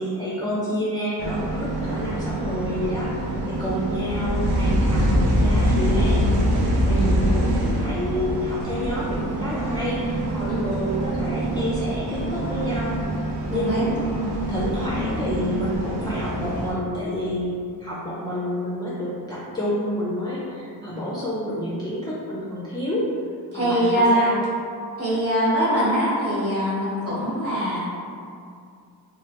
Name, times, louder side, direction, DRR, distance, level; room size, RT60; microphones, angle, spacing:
voice 1, 0.0-6.4 6.9-13.0 13.5-13.9 14.5-23.1 23.5-24.3, left 1 dB, 10° left, -8 dB, 0.4 m, -29 dB
sound 1, 1.2-16.7, right 1 dB, 85° right, 0.5 m, -24 dB
voice 2, 13.5-13.9 23.5-24.3 25.0-27.9, equal, 35° right, -8 dB, 1.0 m, -23 dB
3.2 x 2.1 x 2.8 m, 2.4 s
wide cardioid pair, 100°, 40 cm